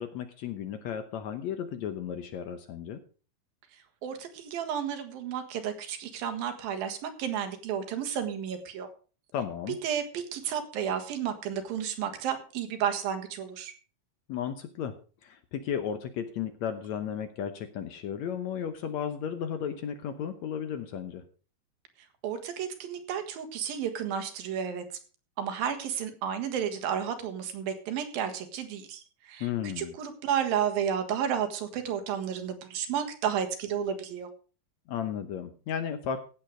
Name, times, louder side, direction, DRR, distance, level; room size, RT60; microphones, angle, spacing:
voice 1, 0.0-3.0 9.3-9.8 14.3-14.9 15.2-21.2 29.4-29.9 34.9-36.2, left 8 dB, 70° left, 9 dB, 1.9 m, -34 dB
voice 2, 3.7-8.9 9.8-13.7 22.2-24.8 25.4-34.3, right 8 dB, 85° right, 8 dB, 3.4 m, -32 dB
16.0 x 7.5 x 5.0 m, 0.38 s
omnidirectional pair, 4.0 m